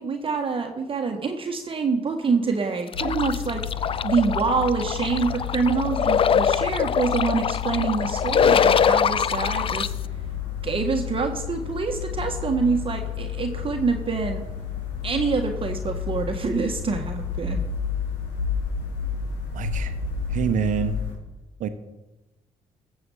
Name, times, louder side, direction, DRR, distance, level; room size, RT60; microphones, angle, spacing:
voice 1, 0.0-9.9 10.6-14.4 15.0-17.6, right 4 dB, 40° right, 4 dB, 1.6 m, -26 dB
sound 1, 2.9-21.1, left 7 dB, 85° left, 2.9 m, -31 dB
sound 2, 2.9-9.9, left 7 dB, 40° left, 0.5 m, -23 dB
voice 2, 19.5-19.9 20.3-20.9 21.6-21.7, right 7 dB, 65° right, 10 dB, 1.2 m, -25 dB
14.5 x 7.9 x 5.7 m, 1.0 s
supercardioid pair, 65°, 14 cm